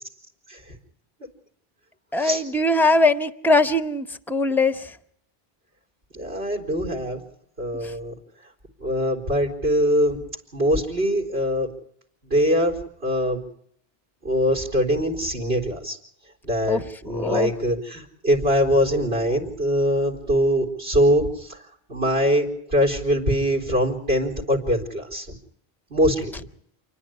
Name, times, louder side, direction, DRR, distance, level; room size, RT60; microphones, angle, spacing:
voice 1, 2.1-4.9 7.8-7.9 16.7-17.5, left 2 dB, ahead, 11 dB, 0.8 m, -21 dB
voice 2, 6.1-7.2 7.6-8.1 8.8-10.2 10.5-11.7 12.2-12.8 13.0-13.4 14.2-16.0 16.4-21.6 21.9-25.3 25.9-26.4, equal, 75° right, 0 dB, 4.3 m, -22 dB
28.5 x 11.0 x 9.9 m, 0.68 s
omnidirectional pair, 1.1 m